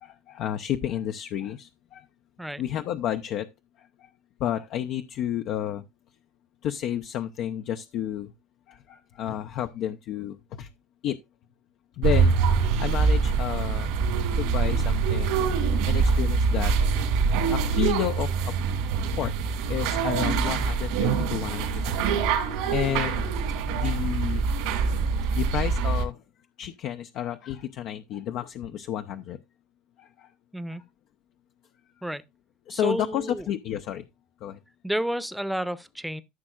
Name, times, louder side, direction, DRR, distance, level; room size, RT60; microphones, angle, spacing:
voice 1, 0.0-2.1 2.6-3.5 3.8-4.1 4.4-5.8 6.6-8.3 8.7-10.7 11.0-11.2 12.0-12.4 12.8-13.9 14.3-15.4 15.9-16.7 17.5-18.5 19.1-22.3 22.7-23.3 23.6-24.5 25.3-26.2 26.6-29.4 30.0-30.3 30.7-30.8 32.7-34.0 34.4-34.6, left 11 dB, 60° left, 0.7 m, -31 dB
sound 1, 12.0-26.1, right 5 dB, 75° right, 2.6 m, -24 dB
voice 2, 32.7-33.5 34.8-36.2, right 1 dB, 5° right, 0.8 m, -30 dB
14.0 x 6.1 x 2.4 m
hypercardioid pair, 85°, 0 cm